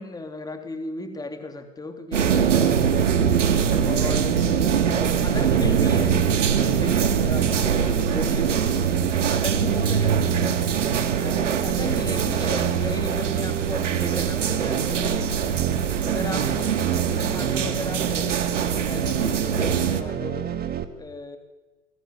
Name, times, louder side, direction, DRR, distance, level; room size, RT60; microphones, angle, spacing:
voice 1, 0.0-3.4 3.8-4.6 4.9-8.9 9.3-10.7 11.2-15.6 16.0-16.8 17.1-20.4 21.0-21.4, left 2 dB, 10° left, 7 dB, 3.2 m, -35 dB
sound 1, 2.1-20.0, right 7 dB, 75° right, 2.3 m, -24 dB
sound 2, 2.2-20.8, right 10 dB, 25° right, 2.6 m, -28 dB
28.0 x 21.0 x 9.6 m, 1.2 s
figure-of-eight pair, 90°, 37 cm